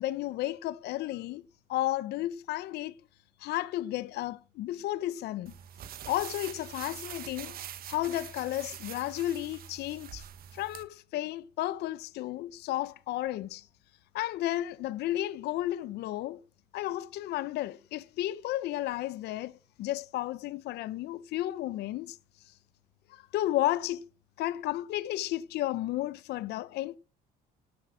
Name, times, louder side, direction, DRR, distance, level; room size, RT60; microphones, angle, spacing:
voice 1, 0.0-1.4 1.7-3.0 3.4-5.5 6.1-7.6 7.9-10.2 10.5-13.7 14.1-16.4 16.7-19.5 19.8-22.2 23.1-24.0 24.4-27.0, left 14 dB, 75° left, 0.7 m, -33 dB
sound 1, 5.5-10.8, right 10 dB, 60° right, 1.5 m, -44 dB
12.5 x 7.7 x 6.1 m
cardioid pair, 110°, 17 cm